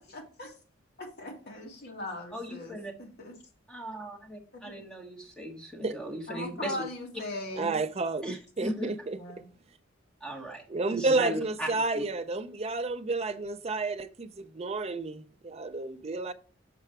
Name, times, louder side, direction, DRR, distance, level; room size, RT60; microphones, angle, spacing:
voice 1, 0.1-0.5 1.0-3.3 4.5-4.8 6.3-7.8 9.2-9.4, left 2 dB, 55° left, 2.0 m, -39 dB
voice 2, 2.3-2.9 3.7-6.8 8.2-8.9 10.2-10.6 11.0-11.7 11.9-12.0, right 1 dB, 5° left, 1.6 m, -38 dB
voice 3, 7.6-9.2 10.7-16.3, right 3 dB, 30° right, 0.5 m, -31 dB
6.8 x 4.6 x 4.5 m
head